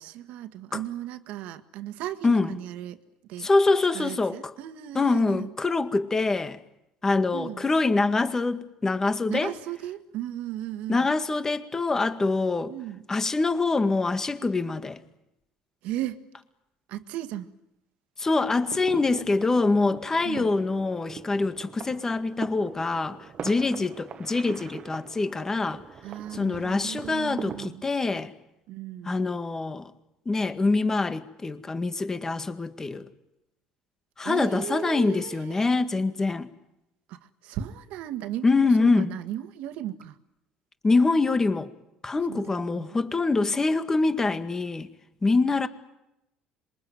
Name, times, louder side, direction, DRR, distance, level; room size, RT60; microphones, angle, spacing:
voice 1, 0.0-3.0 3.3-3.5 3.9-5.5 7.3-7.7 9.3-11.1 12.7-13.0 15.8-16.2 16.9-17.5 20.2-20.5 26.0-27.9 28.7-29.2 34.2-35.7 37.1-40.2 42.3-43.0, right 12 dB, 75° right, 1.8 m, -36 dB
voice 2, 3.4-4.4 4.9-6.6 7.0-9.5 10.9-12.7 13.1-15.0 18.2-25.8 26.3-28.3 29.1-29.9 30.3-33.1 34.2-36.5 38.4-39.1 40.8-41.7 42.0-44.9 45.2-45.7, left 3 dB, 20° left, 1.9 m, -25 dB
sound 1, 18.5-27.7, right 7 dB, 45° right, 1.5 m, -42 dB
26.5 x 23.0 x 9.6 m
supercardioid pair, 95°, 2 cm